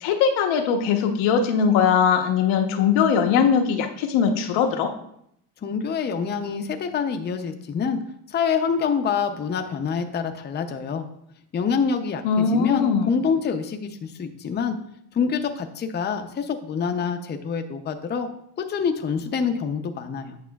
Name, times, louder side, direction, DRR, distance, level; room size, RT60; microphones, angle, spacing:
voice 1, 0.0-4.9 12.2-13.1, left 6 dB, 85° left, 4 dB, 1.0 m, -20 dB
voice 2, 5.6-8.0 8.3-11.0 11.5-14.8 15.1-18.3 18.6-20.4, left 6 dB, 25° left, 6 dB, 0.5 m, -26 dB
8.5 x 6.0 x 2.3 m, 0.73 s
cardioid pair, 130°, 45 cm